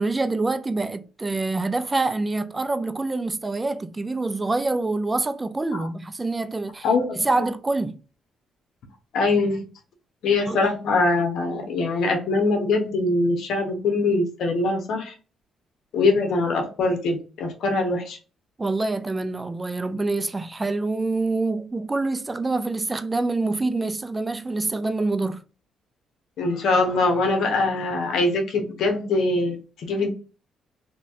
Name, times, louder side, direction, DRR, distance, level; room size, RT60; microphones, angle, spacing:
voice 1, 0.0-6.9 7.1-8.0 10.5-10.7 18.6-25.4, right 3 dB, 20° right, 0.4 m, -26 dB
voice 2, 6.8-7.1 9.1-9.6 10.2-15.1 15.9-18.2 26.4-30.1, left 3 dB, 75° left, 1.0 m, -23 dB
3.1 x 2.7 x 2.6 m
cardioid pair, 90°, 0 cm